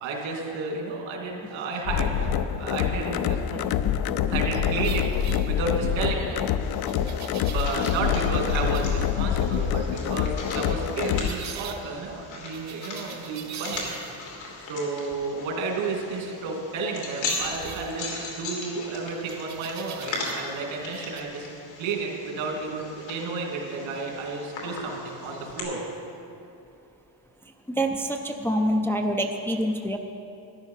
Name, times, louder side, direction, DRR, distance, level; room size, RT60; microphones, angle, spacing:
voice 1, 0.0-3.7 4.3-5.1 5.5-6.5 7.4-14.0 14.7-21.5 21.8-25.8, right 4 dB, 85° right, 0 dB, 2.7 m, -32 dB
sound 1, 1.9-11.3, left 9 dB, 55° left, 0.5 m, -26 dB
sound 2, 4.8-6.0 6.9-8.2 8.5-9.0 11.2-11.8 12.5-14.4 17.2-18.5 19.3-20.6 20.9-21.2, right 9 dB, 40° right, 0.7 m, -42 dB
sound 3, 6.6-25.6, left 3 dB, 80° left, 3.1 m, -39 dB
voice 2, 27.7-30.0, equal, 5° left, 3 dB, 0.3 m, -26 dB
13.5 x 10.5 x 5.6 m, 2.7 s
cardioid pair, 160°, 45 cm